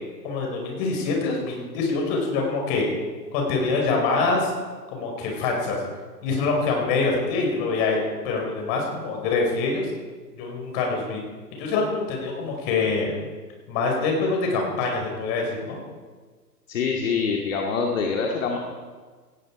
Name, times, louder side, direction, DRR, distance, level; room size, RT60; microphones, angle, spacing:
voice 1, 0.2-2.8 3.3-4.5 4.9-5.8 6.2-9.9 10.3-11.2 11.5-13.2 13.7-15.8, left 3 dB, 30° left, 1 dB, 5.4 m, -25 dB
voice 2, 16.7-18.6, left 5 dB, 50° left, 1 dB, 2.3 m, -25 dB
18.0 x 16.5 x 4.9 m, 1.5 s
figure-of-eight pair, 125°, 50 cm